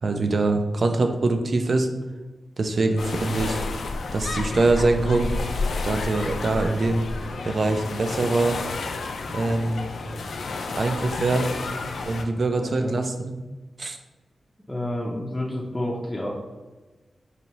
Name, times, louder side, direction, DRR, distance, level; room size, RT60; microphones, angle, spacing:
voice 1, 0.0-1.9 2.6-3.6 4.1-5.3 5.8-7.1 7.4-8.6 9.3-9.9 10.8-11.5 12.0-13.3 13.8-14.0, right 2 dB, 55° right, 5 dB, 0.4 m, -23 dB
sound 1, 3.0-12.2, left 3 dB, 80° left, 0.3 m, -30 dB
voice 2, 12.6-12.9 14.7-16.3, left 1 dB, 10° left, -4 dB, 0.5 m, -29 dB
4.3 x 2.6 x 2.9 m, 1.2 s
wide cardioid pair, 105°, 0 cm